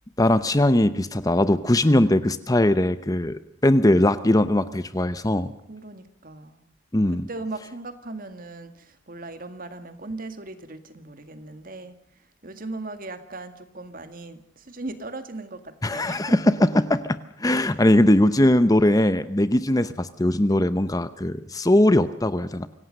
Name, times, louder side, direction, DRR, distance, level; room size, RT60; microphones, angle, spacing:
voice 1, 0.2-5.5 6.9-7.3 15.8-22.7, left 1 dB, 20° left, 13 dB, 0.8 m, -20 dB
voice 2, 5.7-6.7 7.3-16.6, right 2 dB, 45° right, 9 dB, 2.0 m, -38 dB
26.0 x 17.5 x 6.6 m, 0.71 s
head